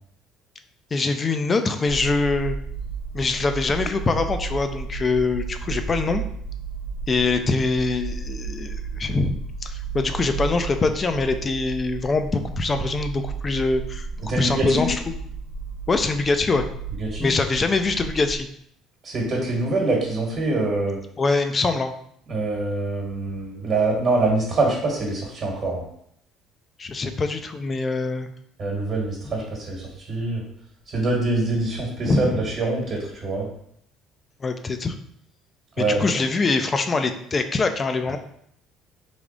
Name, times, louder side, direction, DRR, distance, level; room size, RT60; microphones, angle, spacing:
voice 1, 0.9-2.6 3.1-6.3 7.1-15.1 15.9-16.7 17.2-18.5 21.2-21.9 26.8-28.3 32.1-32.5 34.4-34.9 35.8-38.2, left 3 dB, 30° left, 8 dB, 0.4 m, -24 dB
sound 1, 1.9-18.4, right 5 dB, 70° left, 1.1 m, -33 dB
voice 2, 14.3-14.9 17.0-17.3 19.0-21.0 22.3-25.8 28.6-30.4 30.9-33.5 35.8-36.0, right 2 dB, 45° right, -2 dB, 1.3 m, -24 dB
3.4 x 2.4 x 3.8 m, 0.70 s
supercardioid pair, 90°, 0 cm